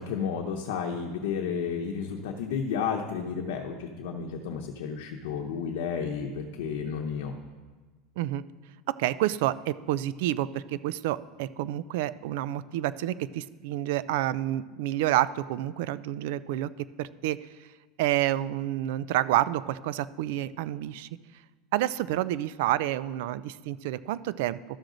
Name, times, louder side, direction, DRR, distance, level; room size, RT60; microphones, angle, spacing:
voice 1, 0.0-7.3, left 6 dB, 75° left, 2 dB, 0.8 m, -32 dB
voice 2, 8.9-17.4 18.0-21.1 21.7-24.6, right 14 dB, 65° right, 17 dB, 0.3 m, -29 dB
13.0 x 6.2 x 3.9 m, 1.4 s
supercardioid pair, 165°, 0 cm